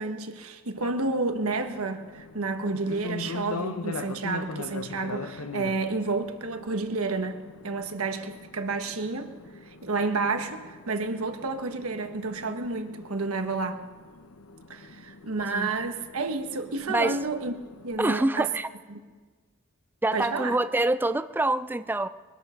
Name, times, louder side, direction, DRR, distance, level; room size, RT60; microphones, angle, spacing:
voice 1, 0.0-9.3 9.7-13.8 14.7-17.5 17.8-18.5 18.9-19.0 20.1-20.6, right 3 dB, 85° right, 6 dB, 1.5 m, -30 dB
sound 1, 0.8-18.1, left 3 dB, 85° left, 0.9 m, -42 dB
voice 2, 18.0-18.7 20.0-22.1, right 2 dB, 10° right, 12 dB, 0.4 m, -25 dB
22.0 x 12.5 x 5.1 m, 1.4 s
head